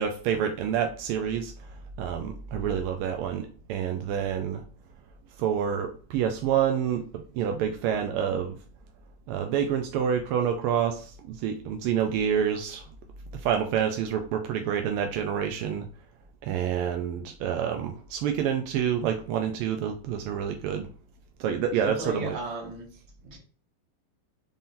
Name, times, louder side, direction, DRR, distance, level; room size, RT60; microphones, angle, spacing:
voice 1, 0.0-1.5 2.0-4.6 5.4-7.1 7.4-8.6 9.3-12.8 13.4-15.9 16.4-20.9 21.4-22.4, right 8 dB, 90° right, 5 dB, 1.5 m, -28 dB
voice 2, 21.7-22.9 23.2-23.4, right 2 dB, 65° right, -1 dB, 2.2 m, -35 dB
5.6 x 3.6 x 2.6 m, 0.41 s
omnidirectional pair, 2.3 m